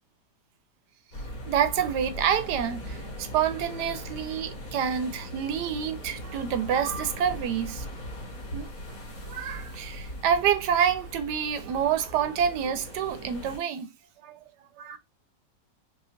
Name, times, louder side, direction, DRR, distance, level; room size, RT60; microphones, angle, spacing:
sound 1, 1.1-13.6, equal, 55° left, 2.3 m, -40 dB
voice 1, 1.5-7.8 8.5-8.7 9.3-13.9 14.2-14.4 14.8-15.0, right 8 dB, 75° right, 1.2 m, -27 dB
5.0 x 2.8 x 2.4 m
omnidirectional pair, 1.9 m